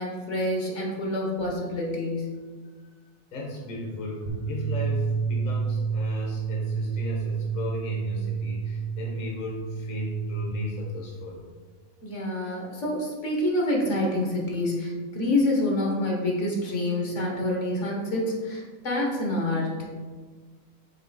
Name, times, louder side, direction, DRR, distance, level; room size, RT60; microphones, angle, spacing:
voice 1, 0.0-2.3 12.0-19.7, left 1 dB, 60° left, -2 dB, 1.5 m, -27 dB
voice 2, 3.3-11.4, left 1 dB, 40° left, -2 dB, 1.1 m, -35 dB
sound 1, 4.3-10.5, right 5 dB, 50° right, 1.3 m, -29 dB
5.5 x 4.2 x 4.1 m, 1.5 s
omnidirectional pair, 1.4 m